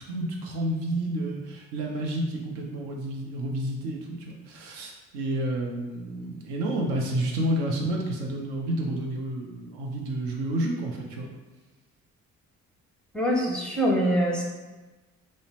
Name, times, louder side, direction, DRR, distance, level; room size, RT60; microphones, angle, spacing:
voice 1, 0.1-11.3, right 1 dB, 70° right, 0 dB, 0.6 m, -30 dB
voice 2, 13.1-14.4, equal, ahead, -2 dB, 0.5 m, -24 dB
2.6 x 2.0 x 3.0 m, 1.2 s
hypercardioid pair, 40°, 41 cm